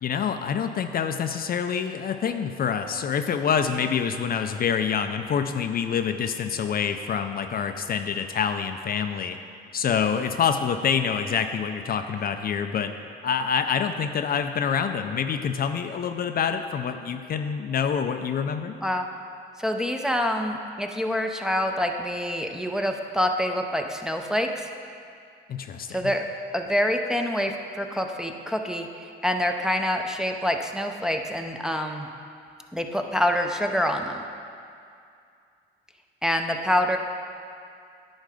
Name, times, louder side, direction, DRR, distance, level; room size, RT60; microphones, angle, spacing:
voice 1, 0.0-9.4 9.7-12.9 13.2-18.8 25.5-26.1, left 7 dB, 50° left, 7 dB, 0.4 m, -26 dB
voice 2, 19.6-24.7 25.9-26.3 26.5-32.1 32.7-34.2 36.2-37.0, left 1 dB, 5° right, 3 dB, 0.5 m, -26 dB
10.5 x 4.4 x 4.9 m, 2.4 s
cardioid pair, 90°, 20 cm